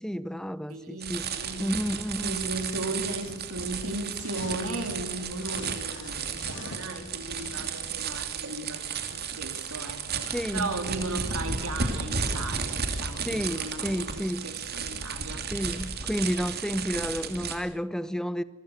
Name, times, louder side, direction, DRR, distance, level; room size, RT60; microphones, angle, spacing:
voice 1, 0.0-1.3 1.6-2.5 10.3-10.8 13.2-14.5 15.5-18.4, equal, 5° left, 0.8 m, -31 dB
voice 2, 0.7-1.7 2.2-15.4, right 2 dB, 85° right, 3.9 m, -36 dB
sound 1, 1.0-17.6, right 5 dB, 50° right, 2.8 m, -33 dB
sound 2, 3.0-5.0 5.4-8.0, left 2 dB, 60° left, 2.2 m, -44 dB
28.0 x 22.5 x 6.8 m
head